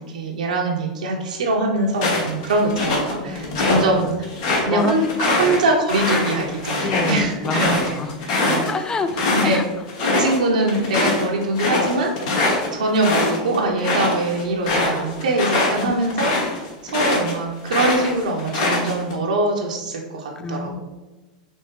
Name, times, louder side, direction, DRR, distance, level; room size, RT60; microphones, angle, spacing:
voice 1, 0.0-4.3 4.6-8.0 8.4-8.6 9.3-9.6 10.0-12.1 12.7-20.8, right 2 dB, 90° right, 0 dB, 0.7 m, -23 dB
sound 1, 1.9-3.8 4.2-9.6 9.9-10.4 10.7-17.3 17.7-19.1, left 2 dB, 60° left, 1.1 m, -22 dB
voice 2, 3.3-3.8 4.7-5.0 5.5-5.6 6.8-8.2 8.6-9.7 15.8-15.9 20.4-20.8, left 4 dB, 15° left, 10 dB, 0.3 m, -28 dB
4.4 x 2.8 x 3.1 m, 1.1 s
hypercardioid pair, 115°, 4 cm